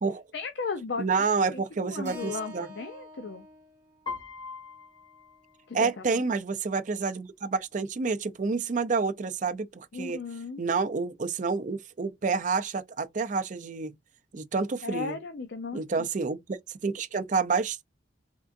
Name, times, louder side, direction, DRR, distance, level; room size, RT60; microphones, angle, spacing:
voice 1, 0.3-1.2 1.5-3.5 5.7-6.2 9.9-10.6 14.8-16.1, left 4 dB, 60° left, 0.5 m, -36 dB
voice 2, 1.0-2.7 5.7-10.2 10.6-13.9 14.3-15.1 15.7-16.6 16.8-17.8, right 4 dB, 40° right, 0.5 m, -29 dB
Keyboard (musical), 2.0-6.3, left 1 dB, 15° right, 1.5 m, -49 dB
Piano, 4.1-6.1, left 4 dB, 25° left, 1.4 m, -41 dB
3.6 x 3.5 x 2.5 m
head